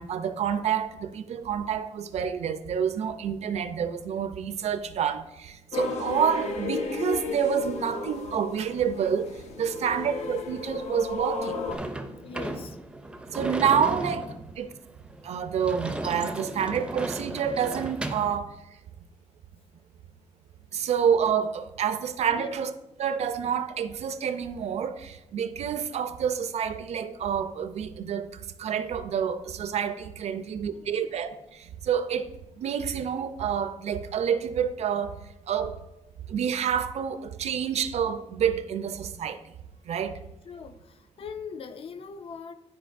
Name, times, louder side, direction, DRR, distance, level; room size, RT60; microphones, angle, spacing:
voice 1, 0.0-11.6 13.3-14.7 15.2-18.5 20.7-22.7 23.0-32.3 32.6-35.2 35.5-35.8 36.3-39.4 39.9-40.2, right 7 dB, 70° right, 0.5 m, -28 dB
sound 1, 5.7-11.8, left 3 dB, 75° left, 0.8 m, -33 dB
Sliding door / Slam, 11.7-18.4, right 1 dB, 10° right, 0.4 m, -35 dB
voice 2, 12.2-12.8 20.8-20.9 22.3-22.6 30.3-31.2 40.4-42.5, left 6 dB, 55° left, 0.5 m, -42 dB
11.5 x 4.5 x 2.5 m
wide cardioid pair, 155°, 12 cm